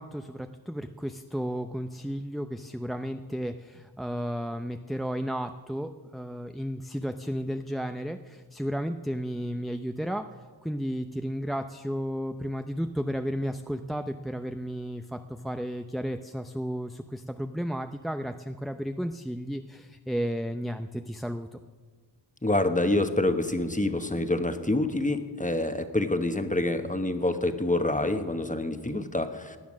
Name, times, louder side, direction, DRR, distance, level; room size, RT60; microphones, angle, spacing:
voice 1, 0.0-10.3 10.6-21.5, equal, ahead, 7 dB, 0.6 m, -33 dB
voice 2, 22.4-29.6, left 2 dB, 15° left, 8 dB, 1.2 m, -27 dB
18.0 x 10.5 x 6.3 m, 1.5 s
wide cardioid pair, 45°, 44 cm